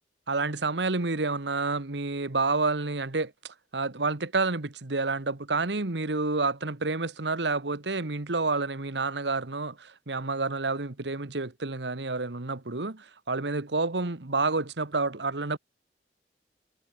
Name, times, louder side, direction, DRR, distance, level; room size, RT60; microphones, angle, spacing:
voice 1, 0.3-15.6, right 3 dB, 90° right, 1.5 m, -29 dB
head